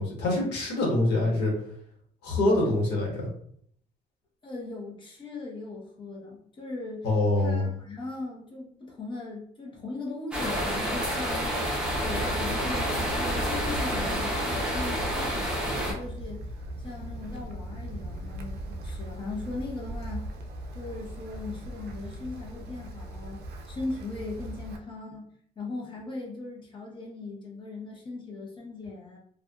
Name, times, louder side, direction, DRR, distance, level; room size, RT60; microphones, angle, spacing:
voice 1, 0.0-1.5 2.2-3.3 7.0-7.7, left 2 dB, 75° left, -2 dB, 1.2 m, -25 dB
voice 2, 4.4-7.1 7.4-20.3 20.7-25.3 25.6-29.2, left 3 dB, 30° left, -2 dB, 1.0 m, -39 dB
sound 1, 10.3-15.9, equal, 5° right, 0.8 m, -29 dB
Wind, 12.0-24.8, right 1 dB, 75° right, 0.4 m, -38 dB
2.5 x 2.4 x 2.3 m, 0.65 s
cardioid pair, 110°, 17 cm